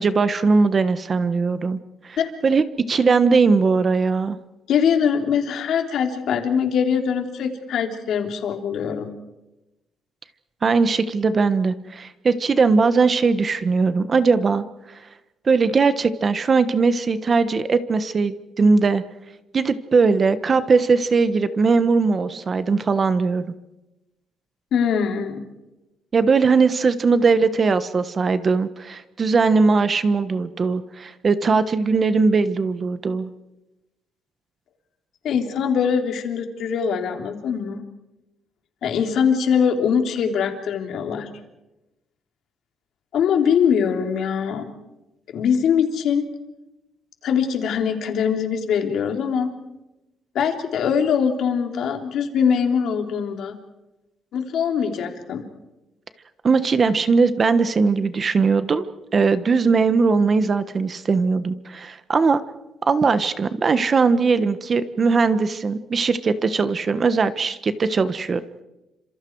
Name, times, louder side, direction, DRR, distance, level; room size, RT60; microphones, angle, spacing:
voice 1, 0.0-1.8 2.1-2.2 2.4-4.4 10.6-14.6 15.4-19.0 19.5-23.4 26.1-33.3 56.4-58.8 59.1-62.4 62.9-68.4, right 4 dB, 35° right, 12 dB, 1.2 m, -19 dB
voice 2, 4.7-9.1 24.7-25.4 35.2-37.8 38.8-41.3 43.1-44.7 45.3-46.3 47.2-49.5 50.3-53.6 54.3-55.5, left 7 dB, 65° left, 4 dB, 3.4 m, -22 dB
30.0 x 26.5 x 4.7 m, 0.99 s
cardioid pair, 135°, 0 cm